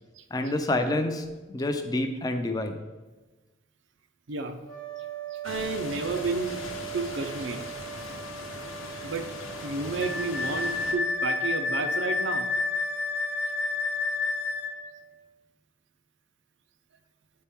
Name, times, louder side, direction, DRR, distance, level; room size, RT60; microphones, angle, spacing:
voice 1, 0.3-1.2 1.5-2.8, left 1 dB, 20° left, 6 dB, 0.5 m, -27 dB
voice 2, 4.3-4.6 5.3-6.6 6.9-7.7 8.1-8.2 9.0-9.3 9.6-12.5, right 3 dB, 65° right, 6 dB, 0.6 m, -31 dB
sound 1, 4.6-15.2, right 8 dB, 90° right, 1.3 m, -41 dB
sound 2, 5.4-10.9, left 3 dB, 85° left, 0.9 m, -40 dB
Wind instrument woodwind instrument, 10.0-14.8, left 3 dB, 55° left, 0.7 m, -29 dB
8.9 x 4.3 x 3.6 m, 1.2 s
head